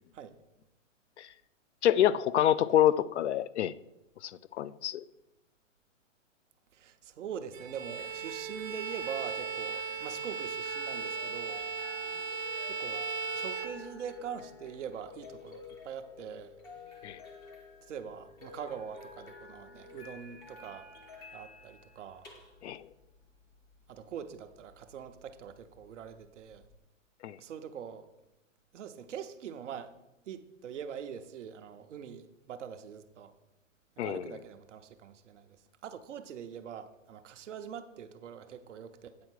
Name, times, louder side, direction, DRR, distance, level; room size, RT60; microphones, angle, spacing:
voice 1, 1.8-3.7 4.2-5.0 17.0-17.2 22.6-22.9 27.2-27.4 34.0-34.2, left 11 dB, 60° left, 0.5 m, -27 dB
voice 2, 6.7-11.6 12.7-13.1 13.3-16.5 17.8-20.9 21.3-22.3 23.9-26.6 27.4-28.1 28.7-30.0 30.3-33.3 34.0-35.6 35.8-39.1, right 8 dB, 65° right, 0.9 m, -43 dB
Bowed string instrument, 7.5-14.3, right 5 dB, 90° right, 1.1 m, -37 dB
sound 1, 7.6-26.8, left 3 dB, 10° left, 0.6 m, -51 dB
8.7 x 4.6 x 6.2 m
hypercardioid pair, 150°, 38 cm